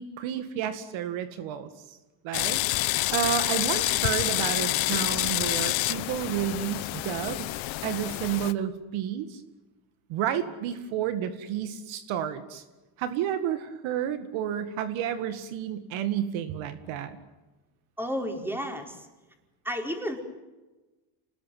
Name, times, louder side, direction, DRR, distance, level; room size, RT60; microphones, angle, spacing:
voice 1, 0.0-2.0 2.2-7.5 7.8-9.4 10.1-12.6 13.0-17.2, right 10 dB, 70° right, 10 dB, 2.2 m, -31 dB
sound 1, 2.3-8.5, left 19 dB, 70° left, 1.3 m, -28 dB
voice 2, 18.0-19.1 19.6-20.2, equal, 5° right, 3 dB, 4.9 m, -32 dB
27.0 x 20.0 x 9.5 m, 1.1 s
cardioid pair, 115°, 48 cm